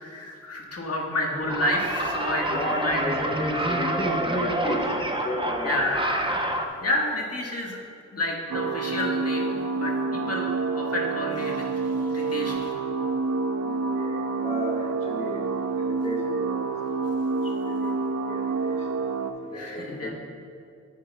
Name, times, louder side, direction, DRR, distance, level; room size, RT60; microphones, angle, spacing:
voice 1, 0.0-3.2 5.6-6.4 6.8-7.8 8.1-11.7 12.1-12.8 19.5-20.1, left 1 dB, 50° left, -2 dB, 1.8 m, -30 dB
sound 1, 1.5-6.7, right 1 dB, 15° right, 1.0 m, -27 dB
voice 2, 2.5-4.9 5.2-5.8 10.1-10.4 13.6-15.4 15.8-16.5 17.6-17.9 18.3-18.7 19.4-20.1, left 1 dB, 20° left, -2 dB, 1.7 m, -33 dB
sound 2, 8.5-19.3, right 4 dB, 60° right, 0.7 m, -28 dB
10.0 x 9.2 x 2.4 m, 2.4 s
cardioid pair, 40°, 31 cm